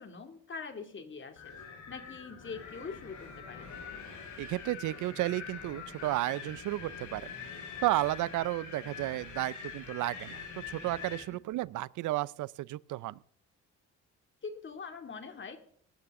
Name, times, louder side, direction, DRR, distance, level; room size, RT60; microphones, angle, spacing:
voice 1, 0.0-1.5 1.9-3.8 14.4-15.6, left 5 dB, 40° left, 2.5 m, -43 dB
Wind, 1.4-11.3, left 6 dB, 75° left, 5.6 m, -44 dB
voice 2, 4.4-7.3 7.8-13.2, right 17 dB, 80° right, 0.5 m, -33 dB
19.0 x 13.0 x 3.7 m
cardioid pair, 90°, 30 cm